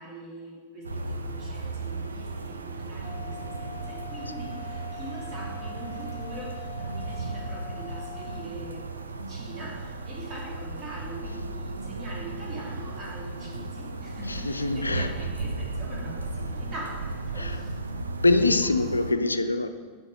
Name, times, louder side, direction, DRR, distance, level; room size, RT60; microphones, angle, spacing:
voice 1, 0.0-17.7, right 1 dB, 30° right, -4 dB, 2.8 m, -42 dB
sound 1, 0.8-19.1, right 3 dB, 75° right, 0.5 m, -35 dB
sound 2, 3.0-8.5, left 9 dB, 25° left, 0.7 m, -43 dB
voice 2, 14.2-15.3 17.3-17.6 18.2-19.7, left 2 dB, 80° left, 10 dB, 0.4 m, -24 dB
6.8 x 5.3 x 7.0 m, 1.5 s
figure-of-eight pair, 90°, 0 cm